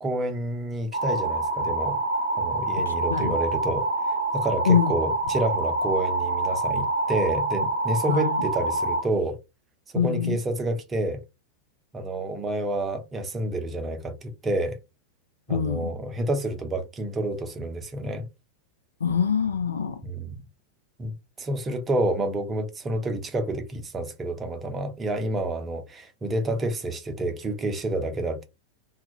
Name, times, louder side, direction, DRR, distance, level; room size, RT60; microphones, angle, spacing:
voice 1, 0.0-2.0 2.4-3.9 4.3-9.4 9.9-11.2 11.9-14.8 15.5-18.3 20.0-20.4 21.0-28.4, right 1 dB, 20° right, 0.6 m, -29 dB
sound 1, 0.9-9.0, right 2 dB, 80° right, 0.6 m, -26 dB
voice 2, 2.9-3.4 4.6-4.9 8.1-8.4 10.0-10.4 15.5-15.9 19.0-20.0, left 7 dB, 70° left, 0.4 m, -24 dB
2.3 x 2.0 x 2.8 m
figure-of-eight pair, 90°, 0 cm